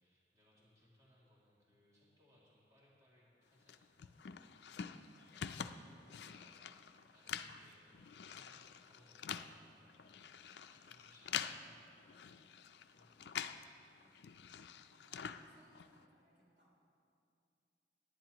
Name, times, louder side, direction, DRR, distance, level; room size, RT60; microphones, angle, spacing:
voice 1, 0.0-4.2 4.5-6.6 6.8-12.5 12.9-14.3, equal, 20° right, -7 dB, 2.3 m, -69 dB
sound 1, 3.7-13.7 14.0-16.0, left 8 dB, 75° left, 0.4 m, -47 dB
voice 2, 13.7-14.0 14.9-16.8, right 1 dB, 70° right, -4 dB, 3.2 m, -71 dB
18.5 x 10.5 x 2.9 m, 2.5 s
head